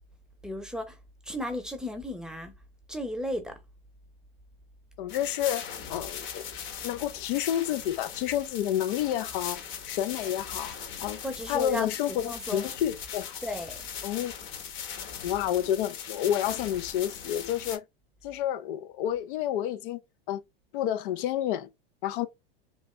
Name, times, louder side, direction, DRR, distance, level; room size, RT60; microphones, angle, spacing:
voice 1, 0.4-1.0 1.3-2.5 2.9-3.5 11.2-11.9 12.2-12.7 13.4-13.8, left 1 dB, ahead, 0.8 m, -34 dB
voice 2, 5.0-6.4 6.8-9.6 9.9-11.2 11.5-13.4 14.0-14.3 15.2-17.8 18.2-20.0 20.3-20.4 20.7-21.7 22.0-22.3, left 11 dB, 60° left, 0.5 m, -29 dB
sound 1, 5.1-17.8, left 7 dB, 40° left, 1.0 m, -39 dB
3.3 x 2.5 x 3.2 m
hypercardioid pair, 100°, 29 cm